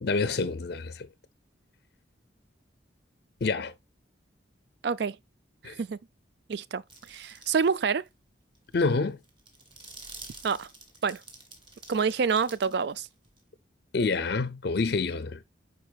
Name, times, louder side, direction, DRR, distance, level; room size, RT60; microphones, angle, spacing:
voice 1, 0.0-1.1 3.4-3.7 5.6-5.8 8.7-9.2 13.9-15.4, left 4 dB, 55° left, 0.5 m, -27 dB
voice 2, 4.8-5.2 5.6-6.0 6.5-6.8 7.1-8.0 10.4-10.7 11.0-11.2 11.9-13.1, right 5 dB, 60° right, 0.4 m, -27 dB
sound 1, 6.9-7.7 8.1-8.2 8.5-13.4, right 2 dB, 25° right, 1.9 m, -48 dB
9.3 x 4.4 x 2.3 m
head